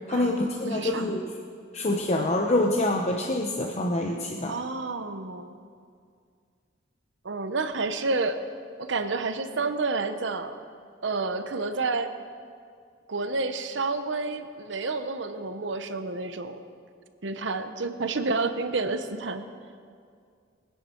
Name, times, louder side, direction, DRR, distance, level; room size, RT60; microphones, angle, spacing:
voice 1, 0.1-1.3 1.7-4.6, left 1 dB, 35° left, 1 dB, 0.8 m, -26 dB
voice 2, 0.6-1.1 4.5-5.5 7.2-8.4 8.8-10.6 11.0-12.1 13.1-16.6 17.2-19.4, right 3 dB, 70° right, 9 dB, 0.8 m, -29 dB
20.0 x 10.0 x 4.5 m, 2.2 s
head